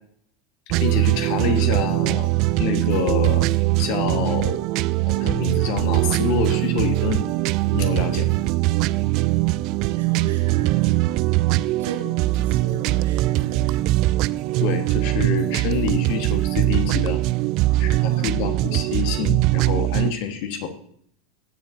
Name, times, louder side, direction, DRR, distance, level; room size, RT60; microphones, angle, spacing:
voice 1, 0.7-2.3 2.6-3.5 3.8-4.6 5.1-7.3 7.7-8.3 14.6-17.2 17.8-20.7, left 7 dB, 60° left, 6 dB, 1.6 m, -27 dB
sound 1, 0.7-20.1, right 18 dB, 55° right, 0.3 m, -21 dB
voice 2, 9.9-11.0 11.8-14.2 17.6-19.1, right 3 dB, 80° right, 1 dB, 3.7 m, -37 dB
18.5 x 7.4 x 2.9 m, 0.64 s
hypercardioid pair, 85°, 0 cm